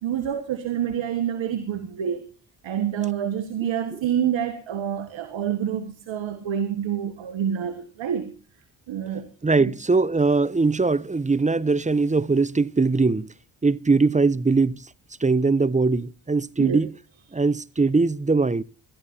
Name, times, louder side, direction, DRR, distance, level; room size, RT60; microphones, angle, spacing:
voice 1, 0.0-2.3 2.6-8.4 8.9-9.3 9.6-9.7 16.6-16.9, right 9 dB, 75° right, 1.6 m, -27 dB
voice 2, 9.4-13.3 13.6-14.9 15.2-16.9 17.3-18.6, right 3 dB, 15° right, 0.6 m, -21 dB
20.5 x 13.5 x 2.8 m
supercardioid pair, 50°, 47 cm